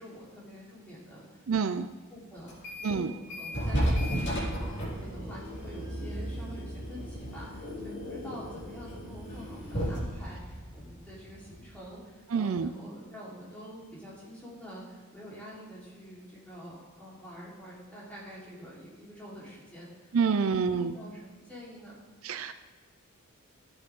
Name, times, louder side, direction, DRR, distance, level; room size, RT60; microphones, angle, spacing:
voice 1, 0.0-1.7 2.1-22.0, equal, 5° left, -8 dB, 3.8 m, -46 dB
voice 2, 1.5-1.9 2.8-3.1 12.3-12.7 20.1-20.9 22.2-22.5, right 5 dB, 70° right, 11 dB, 0.5 m, -27 dB
sound 1, 2.5-3.0 3.3-11.8, equal, 55° left, 3.4 m, -34 dB
13.5 x 7.9 x 3.7 m, 1.3 s
head